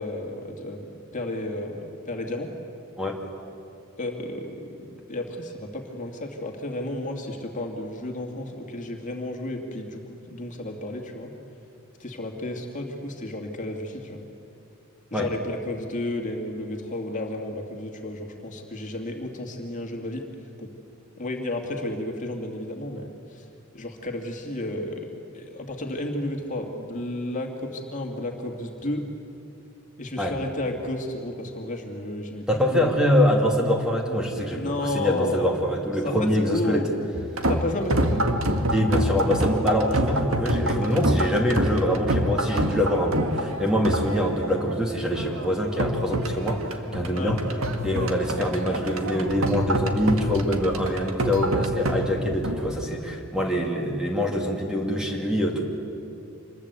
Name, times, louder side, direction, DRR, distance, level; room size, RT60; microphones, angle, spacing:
voice 1, 0.0-2.5 4.0-11.3 12.0-14.2 15.1-20.2 20.6-20.7 21.2-23.5 23.7-25.1 25.3-29.1 30.0-32.9 34.5-35.6 36.0-36.9 37.5-38.3 47.1-47.4, left 1 dB, 35° left, 2 dB, 2.5 m, -32 dB
voice 2, 32.5-36.9 38.7-47.6 47.8-55.6, equal, 5° right, 0 dB, 2.5 m, -24 dB
sound 1, 37.1-52.8, right 1 dB, 75° right, 1.9 m, -27 dB
26.5 x 21.5 x 8.4 m, 2.8 s
head